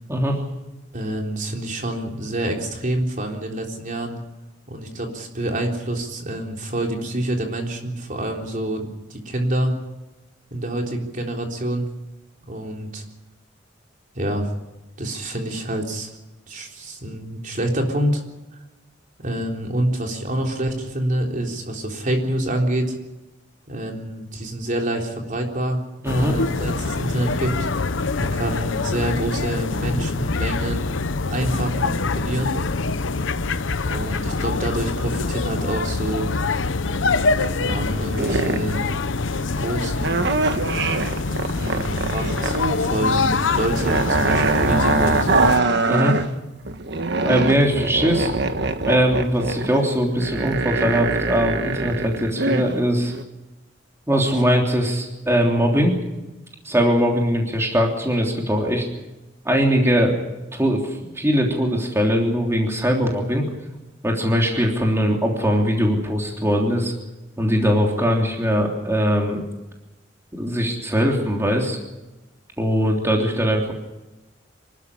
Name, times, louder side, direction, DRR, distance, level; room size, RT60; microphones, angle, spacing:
voice 1, 0.9-4.2 4.7-9.7 10.5-11.9 12.5-13.0 14.1-14.5 15.0-16.1 16.5-18.2 19.2-23.0 23.7-25.8 26.1-27.9 28.2-30.9 31.3-32.6 33.8-36.3 37.5-38.9 39.6-40.3 41.6-45.4, right 1 dB, 45° right, 1 dB, 3.7 m, -27 dB
sound 1, 26.1-45.6, left 3 dB, 90° left, 0.9 m, -24 dB
sound 2, 37.2-37.8 38.1-38.8 40.0-42.8 43.1-46.3 46.6-52.7 53.1-53.2, right 3 dB, 65° right, 1.4 m, -23 dB
voice 2, 45.9-46.2 47.2-48.3 48.8-53.1 54.1-55.9 56.6-58.8 59.4-60.1 60.5-63.5 64.0-66.9 67.4-69.4 70.3-71.8 72.6-73.7, equal, 15° right, 0 dB, 3.3 m, -21 dB
26.5 x 13.0 x 9.9 m, 1.0 s
head